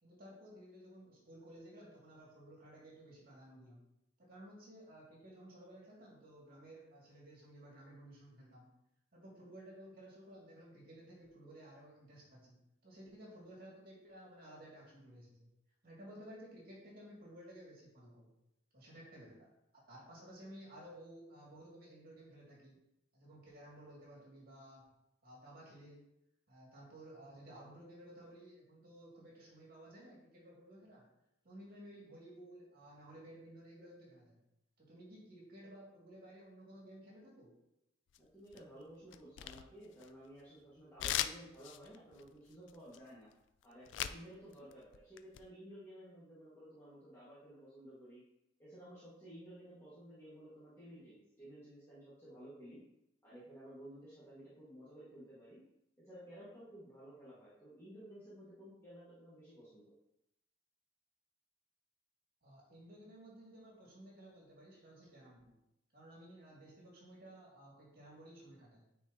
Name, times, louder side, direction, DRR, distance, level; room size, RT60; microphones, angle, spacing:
voice 1, 0.0-3.8 4.2-8.7 9.1-15.5 15.8-18.3 18.7-22.8 23.1-24.8 25.2-26.1 26.5-31.1 31.4-34.4 34.8-37.5 62.4-65.5 65.9-68.9, right 1 dB, 50° right, -4 dB, 2.4 m, -55 dB
sound 1, 38.1-38.7 39.1-40.4 41.0-44.2 44.5-45.4, left 11 dB, 65° left, 0.3 m, -40 dB
voice 2, 38.2-43.3 43.6-48.2 48.6-52.8 53.2-55.6 56.0-59.9, equal, 15° left, -11 dB, 1.7 m, -54 dB
9.3 x 4.5 x 2.9 m, 0.85 s
head